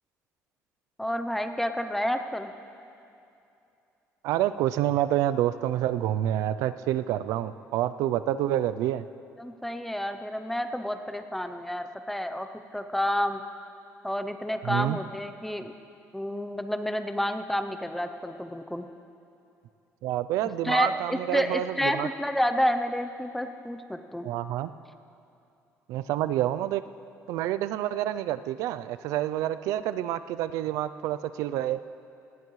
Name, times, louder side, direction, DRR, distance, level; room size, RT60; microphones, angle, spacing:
voice 1, 1.0-2.5 9.4-13.4 14.0-15.8 16.1-18.9 20.6-24.3, left 1 dB, 5° left, 8 dB, 0.6 m, -30 dB
voice 2, 4.2-9.0 14.6-15.0 20.0-22.1 24.2-24.7 25.9-26.8 27.3-31.8, right 12 dB, 85° right, 13 dB, 0.4 m, -28 dB
18.5 x 15.5 x 3.2 m, 2.7 s
cardioid pair, 145°, 6 cm